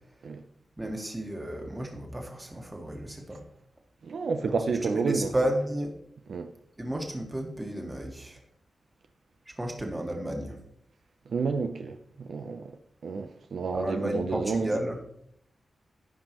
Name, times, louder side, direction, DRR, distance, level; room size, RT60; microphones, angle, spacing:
voice 1, 0.8-3.4 4.5-5.9 6.8-8.4 9.5-10.6 13.7-15.0, right 1 dB, 15° right, 1.7 m, -32 dB
voice 2, 4.0-5.3 6.3-6.5 11.3-12.7 13.0-14.7, right 5 dB, 75° right, 0.6 m, -30 dB
15.5 x 5.4 x 3.0 m
wide cardioid pair, 125°, 0 cm